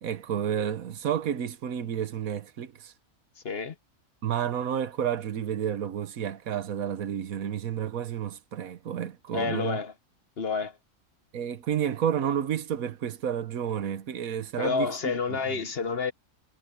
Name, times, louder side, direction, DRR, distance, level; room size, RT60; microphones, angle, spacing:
voice 1, 0.0-2.9 4.2-9.8 11.3-14.9 15.3-15.6, right 9 dB, 80° right, 1.4 m, -30 dB
voice 2, 3.4-3.7 9.3-9.9 10.4-10.8 14.6-16.1, left 5 dB, 45° left, 1.2 m, -29 dB
omnidirectional pair, 1.5 m